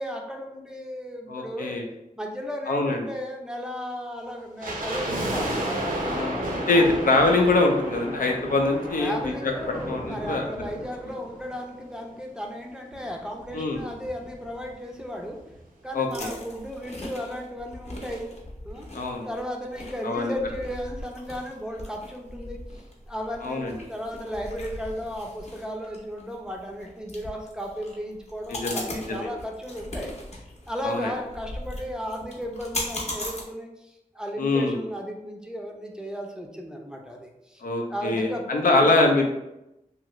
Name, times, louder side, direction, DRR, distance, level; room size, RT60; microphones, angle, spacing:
voice 1, 0.0-1.8 2.2-5.6 6.7-6.9 9.0-15.4 15.8-18.3 18.6-18.9 19.2-22.6 23.1-30.2 30.7-37.6 37.9-39.1, equal, 5° right, 1 dB, 0.4 m, -35 dB
voice 2, 1.3-1.8 2.7-3.0 6.1-9.5 9.8-10.4 10.8-10.9 13.5-13.8 15.9-16.3 18.9-19.3 20.0-20.3 23.4-23.8 28.5-29.3 30.8-31.1 34.4-34.8 37.6-39.3, left 2 dB, 85° left, 2 dB, 0.5 m, -24 dB
sound 1, 4.6-11.9 12.1-12.2 12.9-14.7 15.0-15.1 15.3-15.6 16.1-16.2, right 1 dB, 85° right, 0.6 m, -33 dB
sound 2, 16.1-33.4, left 1 dB, 50° left, 0.7 m, -39 dB
2.8 x 2.4 x 3.0 m, 0.90 s
wide cardioid pair, 80°, 14 cm